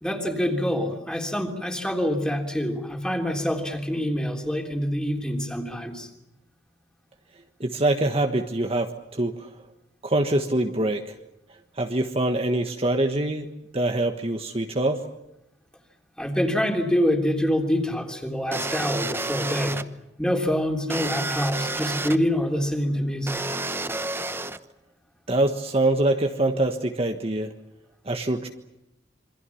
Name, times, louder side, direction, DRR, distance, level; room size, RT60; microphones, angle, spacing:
voice 1, 0.0-6.1 16.2-19.8 20.2-23.6, equal, 5° left, 3 dB, 3.4 m, -26 dB
voice 2, 7.6-9.5 10.0-11.1 11.8-15.1 25.3-27.5 28.0-28.5, right 1 dB, 35° right, 5 dB, 1.4 m, -24 dB
sound 1, 18.5-19.8 20.9-22.2 23.3-24.6, right 2 dB, 15° right, 0.9 m, -30 dB
27.5 x 24.0 x 7.2 m, 0.87 s
head